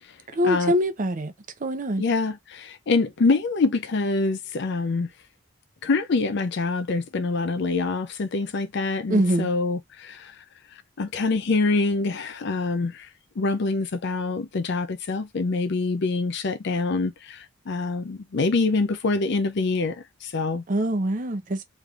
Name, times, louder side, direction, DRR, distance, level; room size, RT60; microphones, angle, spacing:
voice 1, 0.3-1.3 1.6-2.0 9.1-9.5 20.7-21.6, equal, 40° right, 0.7 m, -24 dB
voice 2, 2.0-5.1 5.8-10.3 11.0-13.1 13.4-20.6, left 3 dB, 55° left, 0.5 m, -25 dB
3.3 x 3.0 x 2.4 m
head